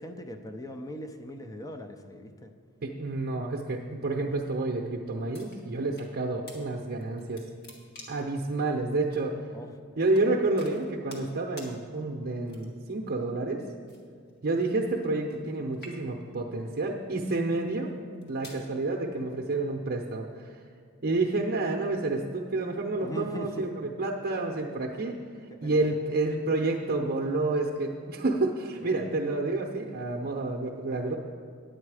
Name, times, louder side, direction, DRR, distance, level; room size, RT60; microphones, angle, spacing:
voice 1, 0.0-2.5 9.5-9.8 23.0-23.6 25.5-26.0 28.9-29.1, equal, 15° left, 6 dB, 0.5 m, -40 dB
voice 2, 2.8-7.4 8.1-9.4 10.0-13.6 14.4-17.9 18.3-20.6 21.0-25.2 25.6-31.1, right 2 dB, 45° right, 1 dB, 0.7 m, -29 dB
sound 1, 5.3-6.1 6.5-6.6 7.0-8.3 9.1-9.3 10.1-10.3 10.6-11.3 11.6-11.7 12.5-12.9 13.9-15.5 15.7-16.3 17.0-17.3 18.0-18.6, left 1 dB, 50° left, 1.6 m, -48 dB
9.7 x 8.8 x 4.8 m, 2.2 s
head